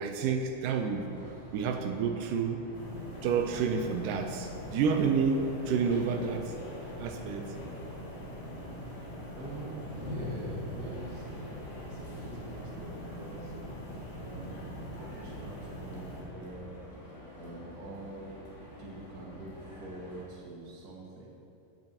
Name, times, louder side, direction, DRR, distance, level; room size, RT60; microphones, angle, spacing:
voice 1, 0.0-2.7 3.2-6.6 7.0-7.5, right 6 dB, 80° right, 5 dB, 2.2 m, -30 dB
sound 1, 0.7-20.2, equal, 20° left, 0.8 m, -49 dB
sound 2, 2.7-16.2, left 1 dB, 65° left, 3.2 m, -42 dB
voice 2, 9.3-13.6 14.2-16.7 17.3-18.3 18.8-21.3, right 1 dB, 40° right, -4 dB, 1.5 m, -45 dB
15.0 x 8.9 x 2.9 m, 2.7 s
omnidirectional pair, 3.9 m